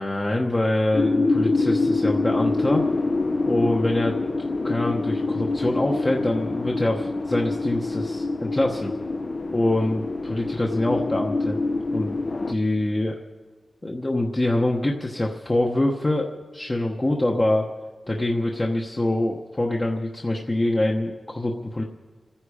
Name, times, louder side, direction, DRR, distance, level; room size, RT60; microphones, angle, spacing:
voice 1, 0.0-2.8 3.4-4.2 4.6-8.9 9.5-11.6 11.9-12.2 12.5-13.2 13.8-17.7 18.1-21.8, left 1 dB, 25° left, 0 dB, 1.1 m, -24 dB
sound 1, 0.9-12.5, left 3 dB, 55° left, 0.8 m, -25 dB
28.0 x 10.0 x 5.0 m, 1.3 s
wide cardioid pair, 85°, 0 cm